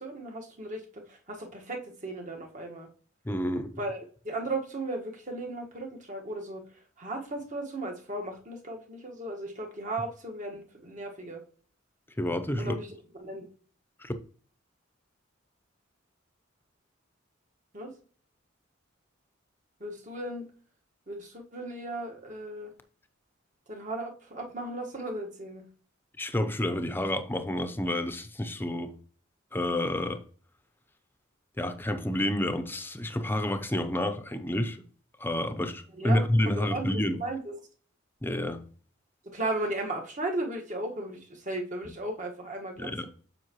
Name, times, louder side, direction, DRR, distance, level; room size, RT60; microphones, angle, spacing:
voice 1, 0.0-2.9 3.8-6.6 7.0-11.4 12.6-12.9 13.2-13.4 17.7-17.9 19.8-20.4 21.1-22.7 23.7-25.6 35.9-37.5 39.3-43.1, right 2 dB, 40° right, 1.6 m, -36 dB
voice 2, 3.2-3.7 12.2-12.8 14.0-14.1 26.2-28.9 29.5-30.2 31.6-34.8 35.2-37.2 38.2-38.6 42.8-43.1, left 1 dB, 10° left, 0.6 m, -29 dB
7.6 x 5.6 x 3.0 m
head